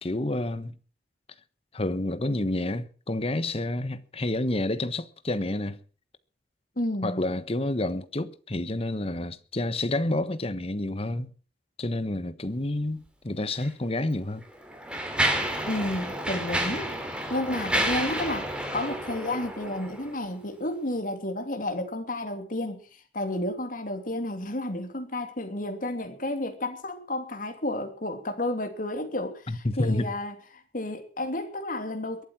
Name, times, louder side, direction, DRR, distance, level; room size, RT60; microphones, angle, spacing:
voice 1, 0.0-0.7 1.7-5.8 7.0-11.3 11.8-14.4 29.5-30.1, left 1 dB, 35° left, 1.2 m, -29 dB
voice 2, 6.8-7.2 15.7-16.9 17.3-32.2, left 1 dB, 50° left, 3.0 m, -31 dB
Mechanisms, 13.5-13.7 14.4-20.2, right 1 dB, 5° right, 2.9 m, -30 dB
22.5 x 8.7 x 6.0 m
head